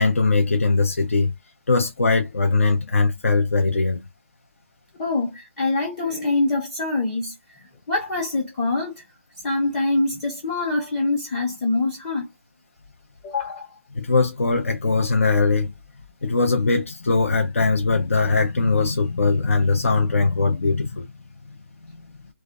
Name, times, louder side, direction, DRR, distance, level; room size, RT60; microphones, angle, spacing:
voice 1, 0.0-1.3 1.7-4.0 13.9-15.7 16.2-21.1 21.8-22.0, left 3 dB, 70° left, 0.7 m, -20 dB
voice 2, 5.0-9.0 9.4-12.3 13.2-13.7, left 2 dB, 20° left, 0.7 m, -25 dB
2.4 x 2.2 x 2.3 m
figure-of-eight pair, 155°, 7 cm